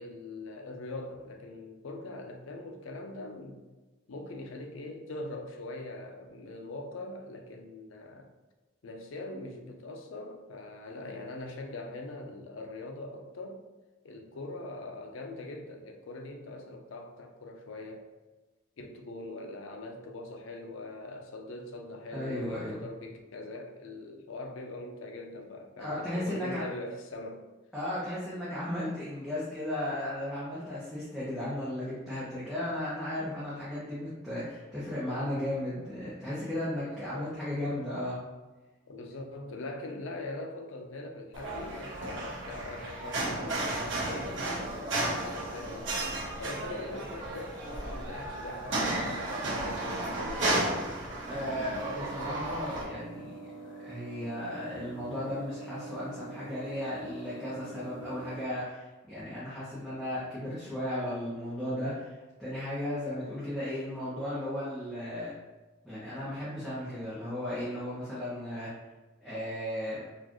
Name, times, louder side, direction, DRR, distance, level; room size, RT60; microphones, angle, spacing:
voice 1, 0.0-3.6 4.1-8.3 8.8-13.6 14.0-18.0 18.8-27.4 36.8-37.4 38.9-43.6 44.0-51.0, left 2 dB, 85° left, 3 dB, 0.5 m, -42 dB
voice 2, 22.1-22.9 25.8-26.6 27.7-38.2 51.3-53.4 53.8-62.1 62.4-65.3 65.8-68.7 69.2-70.0, left 1 dB, ahead, -11 dB, 0.7 m, -35 dB
sound 1, 41.3-52.8, right 2 dB, 70° right, 1.2 m, -33 dB
sound 2, 51.2-58.4, right 3 dB, 35° left, 1.2 m, -45 dB
4.2 x 2.4 x 2.9 m, 1.2 s
head